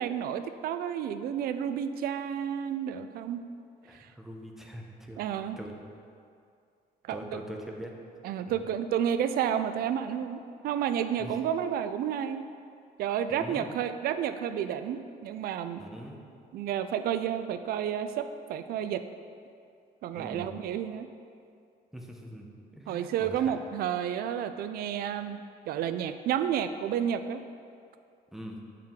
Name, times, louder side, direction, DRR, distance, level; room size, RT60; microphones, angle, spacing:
voice 1, 0.0-3.4 3.9-4.1 5.2-5.6 7.0-7.4 8.2-12.4 13.0-15.8 16.5-19.1 20.0-21.1 22.9-25.4 25.7-27.4, right 9 dB, 65° right, 10 dB, 0.4 m, -31 dB
voice 2, 3.8-5.2 5.6-5.7 7.1-7.9 8.5-8.6 11.2-11.3 13.3-13.7 15.8-16.2 20.1-20.6 21.9-23.5 28.3-28.6, equal, ahead, 0 dB, 0.7 m, -43 dB
7.4 x 4.5 x 3.7 m, 2.4 s
cardioid pair, 110°, 17 cm